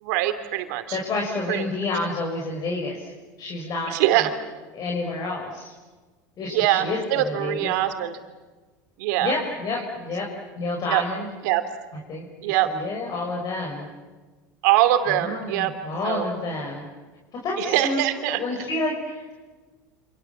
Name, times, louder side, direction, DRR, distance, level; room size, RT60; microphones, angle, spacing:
voice 1, 0.0-1.0 1.5-1.6 3.9-4.3 6.5-8.2 9.0-9.3 10.9-11.0 11.4-11.6 12.4-12.7 14.6-15.7 16.0-16.3 17.6-18.4, right 14 dB, 70° right, 9 dB, 2.9 m, -23 dB
voice 2, 0.9-3.1 3.4-4.3 4.7-5.7 6.4-7.7 9.2-10.3 10.5-11.3 12.1-13.9 15.1-16.9 17.4-19.3, left 2 dB, 45° left, -1 dB, 6.4 m, -29 dB
28.5 x 27.0 x 7.4 m, 1.3 s
hypercardioid pair, 95°, 10 cm